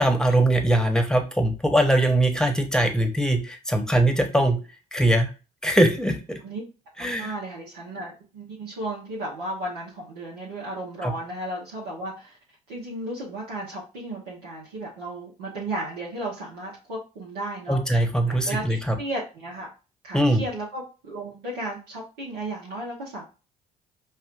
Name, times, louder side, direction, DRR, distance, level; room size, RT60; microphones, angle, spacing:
voice 1, 0.0-4.6 4.9-5.3 5.6-6.4 7.0-7.3 11.0-11.1 17.7-18.9 20.1-20.4, right 1 dB, 5° left, 4 dB, 1.0 m, -21 dB
voice 2, 7.2-12.4 12.7-17.8 18.3-19.7 20.0-23.2, right 1 dB, 75° right, -5 dB, 1.1 m, -34 dB
5.4 x 2.4 x 2.5 m, 0.32 s
hypercardioid pair, 50°, 20 cm